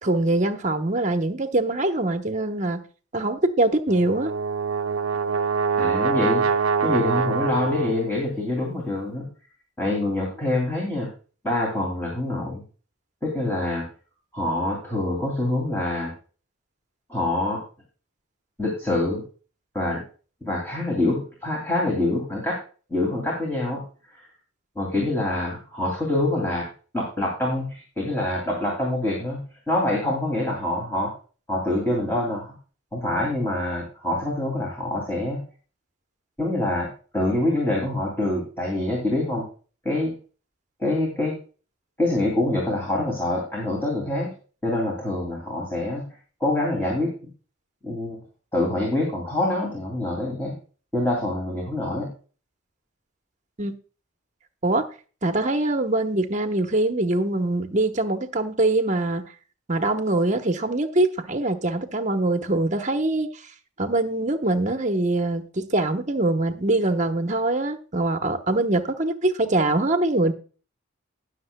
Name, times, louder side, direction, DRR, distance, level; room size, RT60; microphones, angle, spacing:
voice 1, 0.0-2.8 3.1-4.3 53.6-53.7 54.6-54.8 55.2-59.2 59.7-63.3 63.8-70.3, right 2 dB, 35° right, 1.0 m, -23 dB
Brass instrument, 3.9-8.2, right 5 dB, 85° right, 0.7 m, -24 dB
voice 2, 5.8-9.3 9.8-11.1 11.4-12.6 13.2-13.9 14.3-16.1 17.1-17.6 18.6-19.2 19.7-20.0 20.4-22.6 22.9-23.8 24.1-24.2 24.8-26.7 26.9-31.1 31.5-32.5 32.9-35.4 36.4-36.9 37.1-39.5 39.8-40.1 40.8-41.4 42.0-44.3 44.6-46.1 46.4-47.1 47.8-48.2 48.5-50.5 50.9-52.1, left 1 dB, 10° left, 2.6 m, -25 dB
20.0 x 6.7 x 2.2 m
head